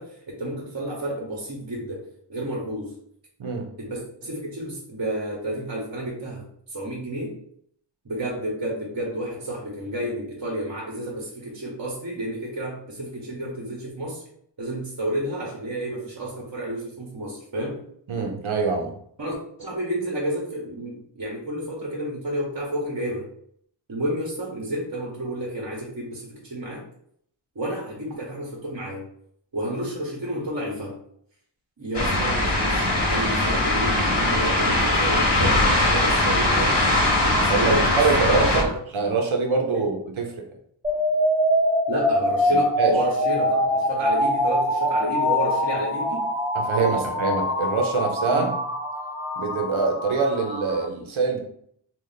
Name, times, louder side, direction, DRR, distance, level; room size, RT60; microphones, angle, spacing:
voice 1, 0.0-2.9 3.8-6.4 6.7-7.3 8.0-14.2 14.6-17.8 19.2-23.3 23.9-26.8 27.5-29.0 29.5-31.0 31.8-36.8 37.2-38.0 38.4-38.8 39.7-39.8 41.9-46.3 46.7-47.1 48.3-48.5, right 1 dB, 50° right, -2 dB, 1.0 m, -31 dB
voice 2, 18.1-18.9 37.5-38.7 38.9-40.4 42.8-42.9 46.5-48.5 49.4-51.4, right 4 dB, 85° right, 2 dB, 0.8 m, -24 dB
sound 1, 31.9-38.6, left 1 dB, 60° left, 1.1 m, -21 dB
sound 2, 40.8-50.8, left 1 dB, 15° right, 1.0 m, -24 dB
3.2 x 2.4 x 3.9 m, 0.67 s
wide cardioid pair, 60°, 47 cm